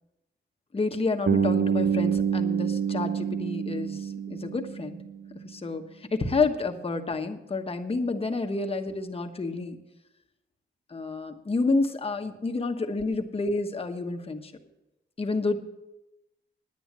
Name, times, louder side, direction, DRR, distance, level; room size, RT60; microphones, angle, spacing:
voice 1, 0.7-5.0 5.4-5.8 6.1-9.8 10.9-14.5 15.2-15.6, left 3 dB, 30° left, 5 dB, 1.2 m, -29 dB
Bass guitar, 1.3-5.2, right 7 dB, 60° right, 0.9 m, -27 dB
9.9 x 9.2 x 7.4 m, 0.96 s
cardioid pair, 90°, 20 cm